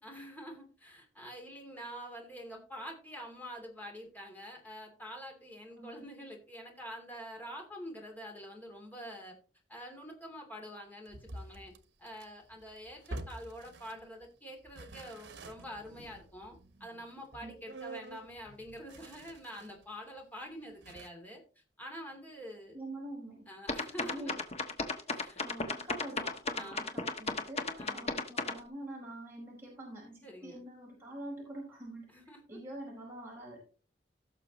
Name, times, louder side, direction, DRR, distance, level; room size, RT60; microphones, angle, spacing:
voice 1, 0.0-9.3 9.7-11.7 12.0-21.4 21.8-22.8 23.5-24.3 25.1-25.4 26.6-26.9 27.8-28.1 30.2-30.7 32.1-32.4, equal, 10° left, 1 dB, 2.8 m, -46 dB
sound 1, 11.1-14.3 14.6-19.8 20.2-20.3 20.8-21.1, right 2 dB, 85° right, 1.1 m, -48 dB
voice 2, 22.7-23.5 24.0-24.4 25.4-32.0 32.5-33.6, right 1 dB, 15° right, -4 dB, 4.9 m, -45 dB
sound 2, 23.7-28.6, left 3 dB, 35° left, 1.2 m, -34 dB
17.0 x 6.6 x 3.0 m, 0.36 s
head